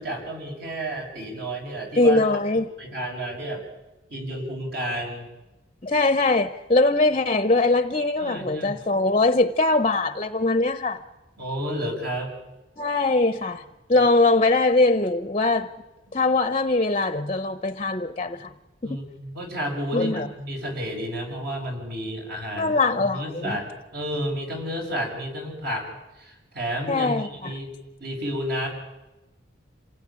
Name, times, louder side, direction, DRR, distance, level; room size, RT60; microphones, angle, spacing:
voice 1, 0.0-2.2 2.8-3.7 4.1-5.3 8.2-8.8 11.4-12.3 13.9-14.0 18.8-27.7 28.0-28.7, equal, 55° right, 6.4 m, -31 dB
voice 2, 2.0-2.7 5.8-11.0 12.8-13.6 13.9-15.7 16.1-18.5 18.8-19.0 19.9-20.3 22.6-23.6 26.9-27.5, left 2 dB, 30° left, 0.8 m, -22 dB
27.0 x 17.0 x 10.0 m
head